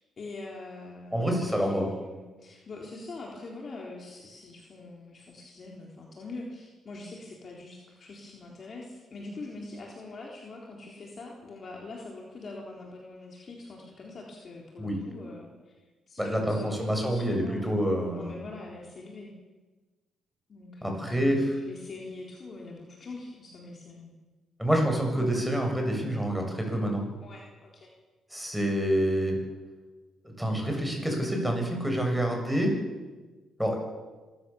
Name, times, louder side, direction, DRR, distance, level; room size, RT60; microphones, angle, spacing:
voice 1, 0.2-15.7 16.1-19.3 20.5-24.2 27.2-27.9, left 2 dB, 45° left, -1 dB, 3.9 m, -43 dB
voice 2, 1.1-1.9 14.8-15.0 16.2-18.4 20.8-21.4 24.6-27.1 28.3-29.4 30.2-32.7 33.6-33.8, equal, ahead, 2 dB, 7.0 m, -27 dB
25.5 x 15.0 x 7.2 m, 1.2 s
cardioid pair, 90°, 0 cm